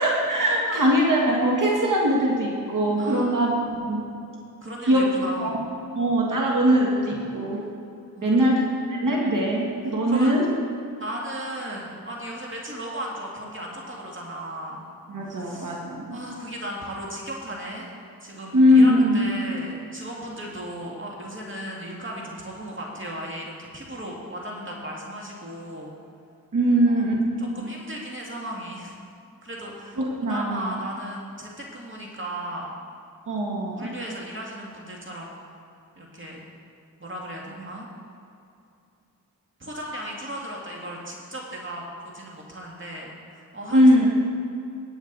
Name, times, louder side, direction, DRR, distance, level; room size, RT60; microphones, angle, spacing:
voice 1, 0.0-4.0 4.9-5.6 6.0-7.6 8.2-8.6 8.9-10.5 15.1-16.2 18.5-19.2 26.5-27.3 27.6-27.7 30.0-30.8 33.3-33.9 43.7-44.1, equal, 60° right, -2 dB, 2.0 m, -21 dB
voice 2, 3.0-3.3 4.6-5.6 8.2-8.4 10.1-10.3 11.0-14.8 15.3-15.8 16.1-17.9 18.2-25.9 26.9-27.0 27.4-28.9 29.4-32.7 33.8-35.3 36.0-36.4 37.0-37.9 39.6-43.8, right 1 dB, 35° right, -2 dB, 2.1 m, -36 dB
18.0 x 8.0 x 4.1 m, 2.6 s
cardioid pair, 70°, 36 cm